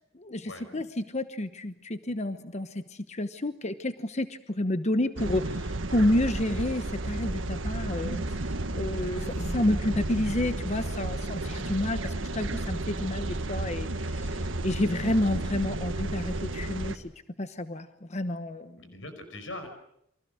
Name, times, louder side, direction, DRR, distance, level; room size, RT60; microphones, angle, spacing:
voice 1, 0.2-8.3 8.7-17.1 17.4-19.0, left 1 dB, 35° left, 10 dB, 1.0 m, -30 dB
sound 1, 5.2-17.0, right 2 dB, 90° right, 1.6 m, -32 dB
voice 2, 8.9-9.5 18.8-19.7, left 2 dB, 80° left, 7 dB, 5.3 m, -42 dB
29.5 x 24.5 x 6.5 m, 0.74 s
head